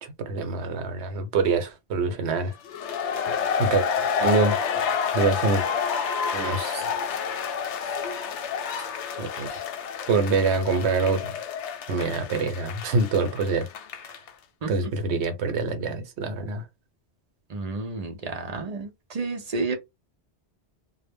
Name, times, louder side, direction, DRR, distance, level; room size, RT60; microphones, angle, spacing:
voice 1, 0.0-2.5 3.6-3.9 4.2-4.6 5.1-5.7 6.3-6.9 8.8-8.9 9.2-9.5 10.1-11.4 11.9-13.7 14.0-14.1 14.7-16.6, right 4 dB, 80° right, 0.9 m, -25 dB
sound 1, 2.6-14.3, left 7 dB, 90° left, 0.9 m, -29 dB
voice 2, 17.5-19.8, right 3 dB, 55° right, 0.4 m, -31 dB
2.1 x 2.0 x 3.3 m
omnidirectional pair, 1.1 m